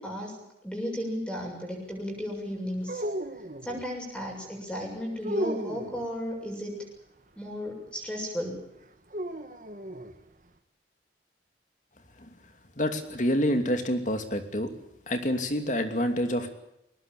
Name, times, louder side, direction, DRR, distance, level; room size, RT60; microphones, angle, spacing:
voice 1, 0.0-3.0 3.6-6.8 7.4-8.6, equal, 5° left, 0 dB, 7.3 m, -34 dB
sound 1, 2.8-3.9 5.2-6.1 9.1-10.1, right 1 dB, 45° right, 1.8 m, -34 dB
voice 2, 12.8-14.7 15.1-16.5, equal, 45° left, 7 dB, 2.8 m, -27 dB
22.5 x 19.5 x 8.7 m, 0.83 s
head